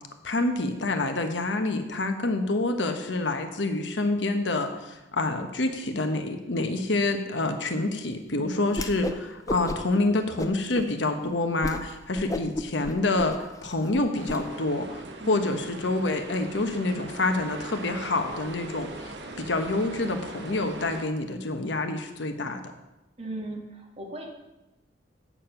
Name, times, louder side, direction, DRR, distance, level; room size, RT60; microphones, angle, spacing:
voice 1, 0.2-13.4 13.6-19.1 19.4-22.7, left 2 dB, 80° left, 6 dB, 1.0 m, -27 dB
voice 2, 8.3-8.7 15.2-15.6 23.2-24.3, right 2 dB, 35° right, -1 dB, 2.0 m, -38 dB
Whoosh swoosh swish, 8.7-9.2 9.5-10.0 10.4-10.9 11.2-11.3 11.6-11.8 12.1-14.4, left 1 dB, 20° left, 0.5 m, -33 dB
sound 1, 14.1-21.1, right 2 dB, 65° right, 1.0 m, -41 dB
8.5 x 7.1 x 5.8 m, 0.99 s
head